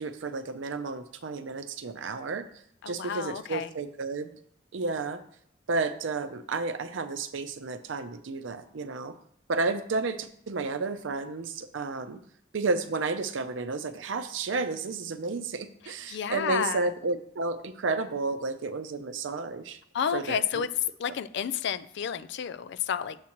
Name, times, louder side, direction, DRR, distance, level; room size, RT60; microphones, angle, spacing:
voice 1, 0.0-2.5 2.9-4.3 4.7-5.2 5.7-9.2 9.5-12.2 12.5-19.8 20.1-20.7, right 3 dB, 75° right, 10 dB, 0.6 m, -32 dB
voice 2, 2.8-3.7 16.1-16.9 19.9-20.7 21.0-23.2, left 8 dB, 60° left, 13 dB, 0.4 m, -31 dB
7.4 x 7.1 x 3.0 m, 0.67 s
head